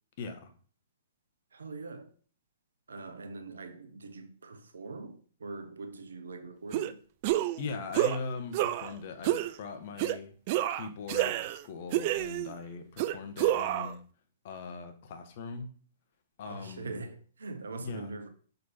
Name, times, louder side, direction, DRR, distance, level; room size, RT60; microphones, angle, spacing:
voice 1, 0.2-0.5 7.6-10.3 10.7-14.0 14.4-15.7 16.4-17.1 17.8-18.1, left 4 dB, 50° left, 1.1 m, -40 dB
voice 2, 1.5-2.1 2.9-7.0 16.5-18.3, right 3 dB, 75° right, 0.9 m, -42 dB
sound 1, 6.7-6.9 7.2-7.6 7.9-8.2 8.5-8.9 9.2-9.5 10.0-10.2 10.5-11.6 11.9-12.5 13.0-13.9, right 14 dB, 45° right, 0.4 m, -29 dB
6.6 x 4.0 x 4.2 m
figure-of-eight pair, 115°, 0 cm